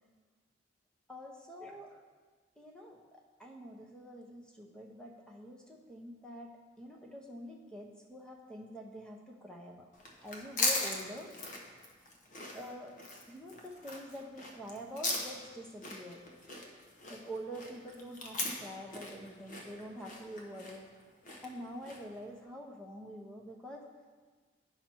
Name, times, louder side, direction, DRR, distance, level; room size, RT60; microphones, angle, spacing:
voice 1, 1.1-2.0 2.6-9.9 10.2-11.3 12.5-13.0 13.3-16.2 17.0-20.9 21.4-23.9, equal, 5° left, 0 dB, 0.9 m, -46 dB
sound 1, 9.9-22.2, left 2 dB, 40° left, 1.1 m, -39 dB
9.6 x 5.8 x 4.5 m, 1.4 s
head